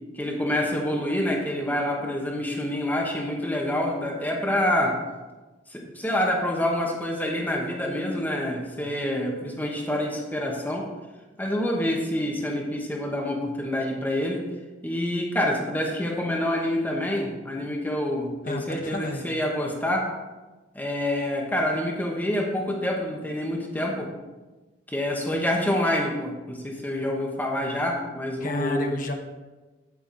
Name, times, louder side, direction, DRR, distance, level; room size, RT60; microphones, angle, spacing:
voice 1, 0.1-5.0 5.7-10.9 11.4-14.5 14.8-20.1 20.7-24.1 24.9-28.9, left 1 dB, 10° left, -1 dB, 1.1 m, -27 dB
voice 2, 18.4-19.3 28.4-29.1, left 2 dB, 45° left, 3 dB, 1.0 m, -31 dB
8.5 x 8.0 x 3.9 m, 1.2 s
head